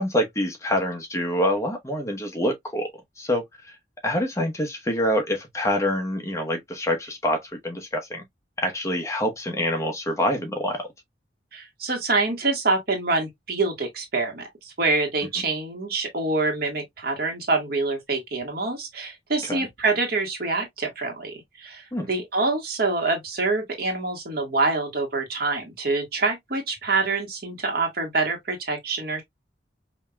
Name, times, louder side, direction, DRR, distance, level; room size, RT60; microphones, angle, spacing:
voice 1, 0.0-2.9 3.2-3.8 4.0-8.2 8.6-10.9 19.4-19.7 21.9-22.1, left 1 dB, 15° left, 0.9 m, -26 dB
voice 2, 11.5-29.2, right 3 dB, 60° right, 1.6 m, -26 dB
5.3 x 2.8 x 2.2 m
head